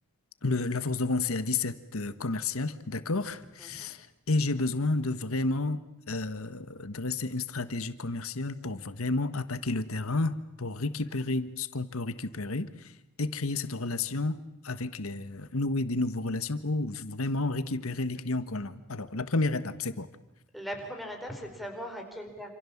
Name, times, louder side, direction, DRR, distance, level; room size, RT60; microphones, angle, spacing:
voice 1, 0.4-5.8 6.1-12.7 13.2-14.4 14.6-20.1, left 2 dB, 80° left, 1.5 m, -31 dB
voice 2, 3.6-3.9 20.5-22.5, equal, ahead, 4.7 m, -39 dB
28.0 x 27.5 x 7.3 m
head